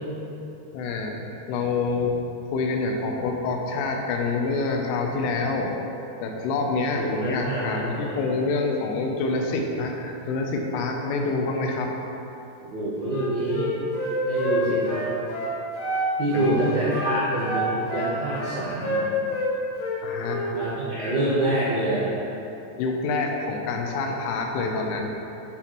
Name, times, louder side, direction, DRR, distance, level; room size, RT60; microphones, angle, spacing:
voice 1, 0.7-2.2 2.5-5.8 6.2-11.9 16.3-16.6 20.0-20.4 22.8-25.1, left 3 dB, 85° left, 2 dB, 3.3 m, -27 dB
voice 2, 7.0-8.2 12.6-13.7 14.3-15.1 16.2-19.1 20.5-22.1, right 1 dB, 80° right, -11 dB, 1.7 m, -26 dB
Wind instrument woodwind instrument, 13.1-16.1 16.3-16.6 16.9-19.5 19.8-20.5, equal, 70° left, 3.5 m, -28 dB
12.0 x 4.2 x 3.0 m, 3.0 s
omnidirectional pair, 5.6 m